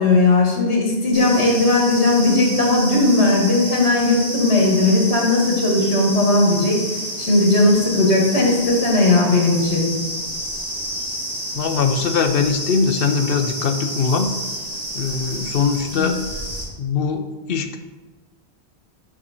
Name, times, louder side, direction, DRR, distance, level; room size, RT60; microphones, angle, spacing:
voice 1, 0.0-6.8 7.2-9.9 15.9-16.2, left 2 dB, 80° left, -1 dB, 1.8 m, -17 dB
sound 1, 1.1-16.6, equal, 35° right, 1.7 m, -29 dB
voice 2, 11.6-14.3 14.9-16.2 16.8-17.8, left 5 dB, 60° left, 8 dB, 0.8 m, -21 dB
6.8 x 6.0 x 4.2 m, 1.2 s
omnidirectional pair, 1.1 m